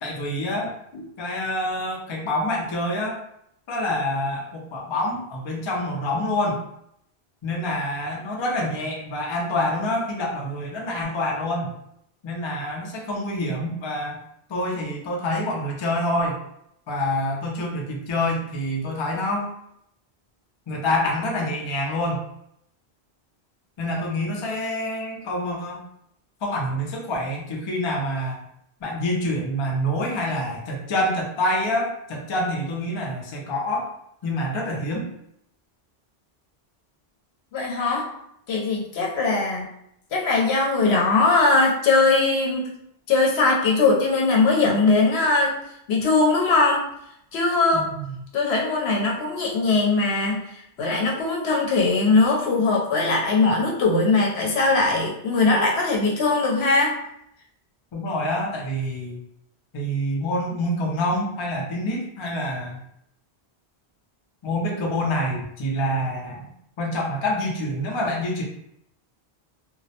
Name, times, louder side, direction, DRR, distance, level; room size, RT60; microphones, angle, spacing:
voice 1, 0.0-0.7 1.2-3.2 3.7-6.6 7.4-11.7 12.2-14.2 14.5-16.4 16.9-19.5 20.7-22.2 23.8-25.8 26.4-28.4 28.8-33.9 34.2-35.1 47.7-48.0 57.9-59.2 59.7-62.8 64.4-66.5 66.8-68.4, left 1 dB, 45° left, -1 dB, 0.3 m, -26 dB
voice 2, 37.5-38.1 38.5-39.7 40.1-42.7 43.1-45.5 45.9-46.8 47.3-47.9 48.3-50.4 50.8-57.0, left 3 dB, 80° left, -1 dB, 0.9 m, -20 dB
2.2 x 2.0 x 2.7 m, 0.75 s
omnidirectional pair, 1.1 m